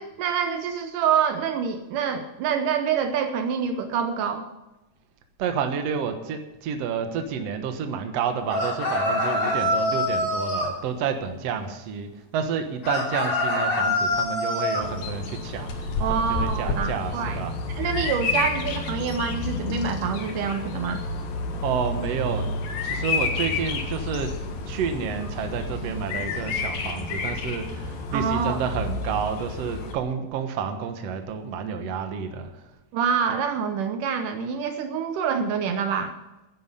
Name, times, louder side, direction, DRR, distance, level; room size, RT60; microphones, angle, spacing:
voice 1, 0.0-4.5 16.0-21.0 28.1-28.6 32.9-36.1, right 7 dB, 75° right, 7 dB, 2.3 m, -26 dB
voice 2, 5.4-17.5 21.6-22.5 22.8-24.4 24.7-32.6, right 6 dB, 60° right, 6 dB, 2.0 m, -30 dB
sound 1, 8.5-10.7 12.8-14.9, left 1 dB, 55° left, 4.3 m, -25 dB
Bird vocalization bird call bird song, 14.8-29.9, left 3 dB, 85° left, 3.3 m, -30 dB
11.5 x 10.5 x 6.7 m, 1.0 s
omnidirectional pair, 3.9 m